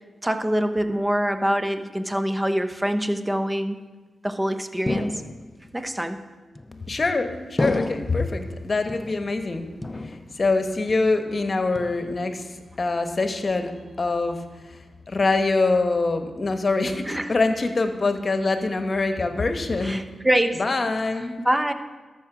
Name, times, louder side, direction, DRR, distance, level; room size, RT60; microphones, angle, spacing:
voice 1, 0.2-3.8 4.2-5.2 5.7-6.2 17.0-17.3 19.8-20.6 21.4-21.7, equal, 15° right, 8 dB, 1.0 m, -24 dB
sound 1, 4.9-5.7 6.5-7.1 7.6-8.4 8.9-9.5 9.8-10.6 10.9-11.3 11.7-12.3, left 2 dB, 25° left, 0.7 m, -31 dB
voice 2, 6.8-20.0 20.6-21.3, left 3 dB, 45° left, 7 dB, 1.2 m, -25 dB
13.0 x 6.2 x 6.1 m, 1.3 s
cardioid pair, 50°, 0 cm